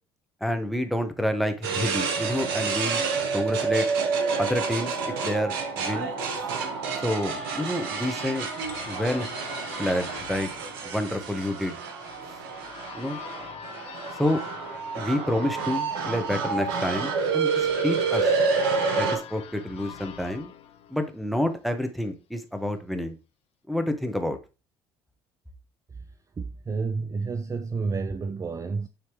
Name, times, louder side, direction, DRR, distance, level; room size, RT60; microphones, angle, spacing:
voice 1, 0.4-3.0 3.3-3.9 4.4-5.0 5.2-6.1 7.0-8.5 8.9-9.3 9.8-10.5 10.8-11.8 12.9-13.2 14.2-14.4 14.9-18.3 18.9-20.5 20.9-23.2 23.7-24.4, left 1 dB, ahead, 1.1 m, -28 dB
sound 1, 1.6-19.2, right 5 dB, 80° right, 0.9 m, -28 dB
sound 2, 5.9-21.6, left 9 dB, 55° left, 0.8 m, -44 dB
voice 2, 26.4-28.9, right 4 dB, 25° right, 0.5 m, -30 dB
9.6 x 3.2 x 3.1 m
hypercardioid pair, 60°, 12 cm